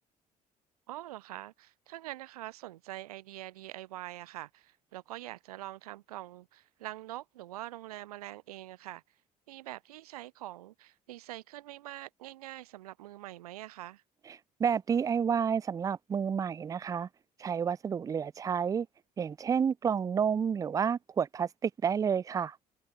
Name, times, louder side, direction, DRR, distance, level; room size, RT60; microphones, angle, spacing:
voice 1, 0.9-9.0 9.5-14.0, right 15 dB, 70° right, 0.7 m, -44 dB
voice 2, 14.6-17.1 17.4-18.9 19.2-22.6, right 7 dB, 15° right, 0.3 m, -30 dB
figure-of-eight pair, 50°, 20 cm